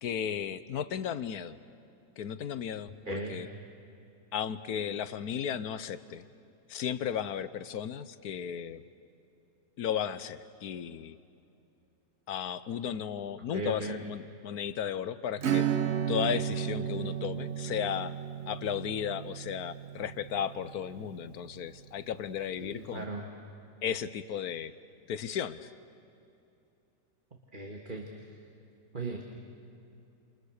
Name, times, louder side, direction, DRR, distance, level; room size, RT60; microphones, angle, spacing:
voice 1, 0.0-1.6 2.2-3.5 4.3-6.2 6.7-8.8 9.8-11.2 12.3-15.7 16.1-18.1 18.5-23.0 23.8-24.7 25.1-25.7, left 8 dB, 70° left, 14 dB, 1.4 m, -35 dB
voice 2, 3.1-3.4 13.5-14.0 22.6-23.3 27.5-28.4 28.9-29.3, right 3 dB, 30° right, -1 dB, 2.3 m, -38 dB
Acoustic guitar / Strum, 15.4-21.6, right 9 dB, 45° right, 1.2 m, -33 dB
29.0 x 28.5 x 6.6 m, 2.7 s
omnidirectional pair, 1.7 m